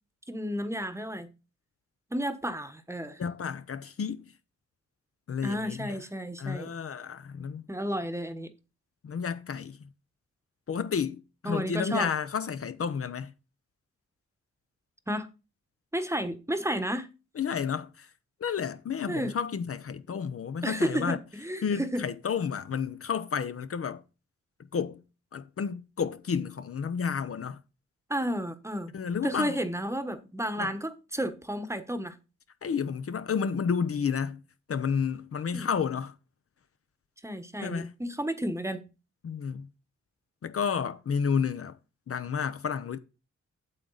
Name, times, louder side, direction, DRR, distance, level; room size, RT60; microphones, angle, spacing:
voice 1, 0.3-1.3 2.1-3.2 5.4-6.7 7.7-8.5 11.4-12.1 15.1-15.3 15.9-17.1 19.1-19.4 20.6-22.0 28.1-28.9 29.2-32.1 35.5-35.7 37.2-38.8, equal, 10° right, 1.1 m, -32 dB
voice 2, 3.2-4.3 5.3-6.0 6.4-7.6 9.0-9.8 10.7-13.3 17.4-18.1 18.4-21.2 21.6-24.0 24.7-25.0 25.3-27.6 28.9-29.6 30.6-30.7 32.6-34.4 34.7-36.1 37.6-37.9 39.2-39.7 40.4-41.8 42.1-43.0, left 6 dB, 50° left, 0.8 m, -31 dB
8.8 x 7.5 x 4.0 m
cardioid pair, 90°, 29 cm